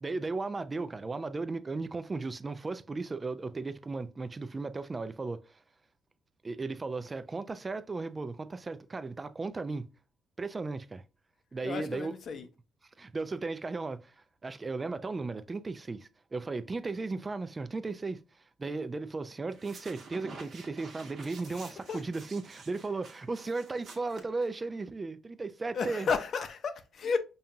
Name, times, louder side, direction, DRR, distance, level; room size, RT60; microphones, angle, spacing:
voice 1, 0.0-5.6 6.4-9.9 10.4-11.0 11.5-12.2 13.0-14.2 14.4-26.1, right 3 dB, 25° right, 0.3 m, -36 dB
voice 2, 11.6-12.5 21.5-22.0 25.7-27.2, left 5 dB, 55° left, 0.6 m, -33 dB
sound 1, 19.5-24.9, right 4 dB, 60° right, 1.2 m, -50 dB
5.3 x 2.3 x 2.7 m
cardioid pair, 90°, 0 cm